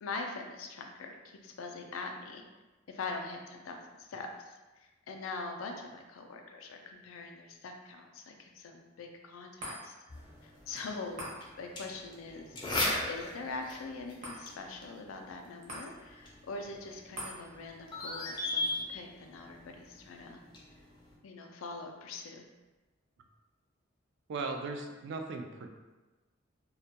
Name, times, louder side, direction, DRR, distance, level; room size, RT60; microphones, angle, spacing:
voice 1, 0.0-2.4 2.9-9.9 10.4-11.3 11.6-12.6 13.1-20.4 21.2-22.5, left 3 dB, 85° left, 3 dB, 0.4 m, -43 dB
sound 1, 9.6-22.2 22.6-22.7, equal, 40° right, 0.7 m, -50 dB
sound 2, 10.1-21.1, left 2 dB, 25° left, 0.4 m, -39 dB
voice 2, 24.3-25.7, right 3 dB, 60° right, 3 dB, 0.3 m, -37 dB
2.2 x 2.1 x 2.7 m, 1.2 s
head